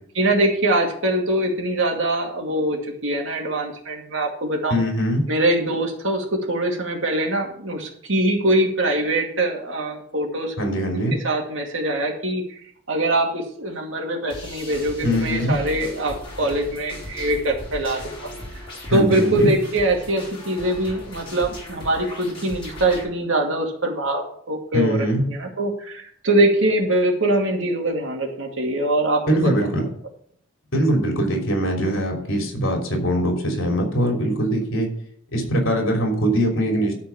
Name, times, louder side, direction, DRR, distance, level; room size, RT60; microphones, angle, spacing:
voice 1, 0.2-4.8 5.3-10.5 10.9-12.6 12.9-18.3 18.9-29.7, right 1 dB, 70° right, 1 dB, 2.3 m, -23 dB
voice 2, 4.7-5.2 10.6-11.1 15.0-15.5 18.9-19.5 24.7-25.3 29.3-29.8 30.7-34.9 35.3-37.0, equal, 70° left, 1 dB, 3.2 m, -22 dB
sound 1, 14.3-23.0, left 1 dB, 25° left, 4.4 m, -37 dB
12.5 x 4.6 x 7.1 m, 0.63 s
head